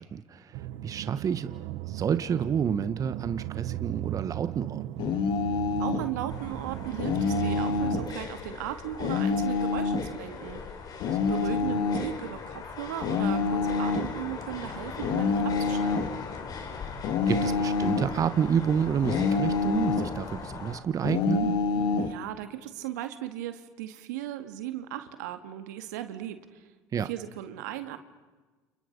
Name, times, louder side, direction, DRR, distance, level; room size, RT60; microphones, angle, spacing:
voice 1, 0.0-1.5 1.9-5.0 11.1-11.3 17.3-21.6 26.9-27.1, right 7 dB, 40° right, 11 dB, 1.3 m, -29 dB
sound 1, 0.5-8.1, right 15 dB, 65° right, 1.0 m, -37 dB
sound 2, 5.0-6.1 7.0-8.1 9.0-10.1 11.0-12.1 13.0-14.2 15.0-16.2 17.0-18.2 19.0-20.2 21.0-22.2, left 4 dB, 60° left, 2.1 m, -27 dB
voice 2, 5.8-10.8 11.3-16.2 21.9-26.7 27.0-28.0, right 13 dB, 85° right, 9 dB, 2.1 m, -37 dB
sound 3, 6.3-20.8, left 5 dB, 45° left, 4.1 m, -40 dB
30.0 x 29.5 x 5.5 m, 1.3 s
hypercardioid pair, 85°, 9 cm